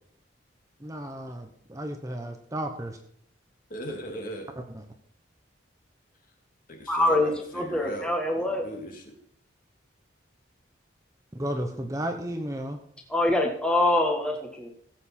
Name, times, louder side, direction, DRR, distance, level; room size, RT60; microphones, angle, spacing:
voice 1, 0.8-3.0 4.7-4.8 11.3-12.8, right 1 dB, 15° right, 4 dB, 0.9 m, -33 dB
voice 2, 3.7-4.5 6.7-8.1 8.4-9.2, equal, 45° left, 2 dB, 2.5 m, -38 dB
voice 3, 6.9-8.6 13.1-14.7, left 1 dB, 5° left, 1 dB, 1.5 m, -24 dB
16.5 x 7.9 x 4.4 m, 0.64 s
head